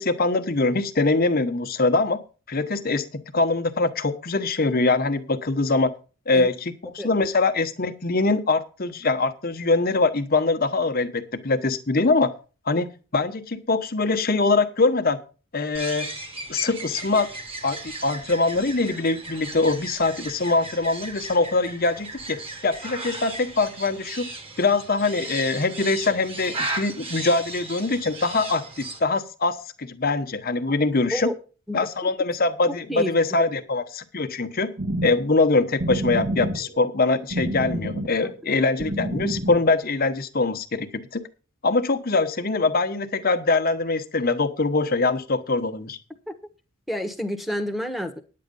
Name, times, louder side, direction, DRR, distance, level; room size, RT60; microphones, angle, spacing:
voice 1, 0.0-2.2 2.5-5.9 6.3-12.3 12.7-15.2 15.5-16.1 16.5-17.3 17.6-24.3 24.6-31.3 31.7-34.7 35.0-41.2 41.6-46.0, left 3 dB, 45° left, 1.1 m, -23 dB
sound 1, 15.7-29.0, right 2 dB, 30° right, 1.6 m, -36 dB
voice 2, 31.7-32.1 32.9-33.5 38.2-38.6 46.3-46.4 46.9-48.2, equal, ahead, 1.3 m, -30 dB
sound 2, 34.8-39.8, right 1 dB, 60° right, 1.7 m, -29 dB
10.0 x 8.6 x 5.4 m
head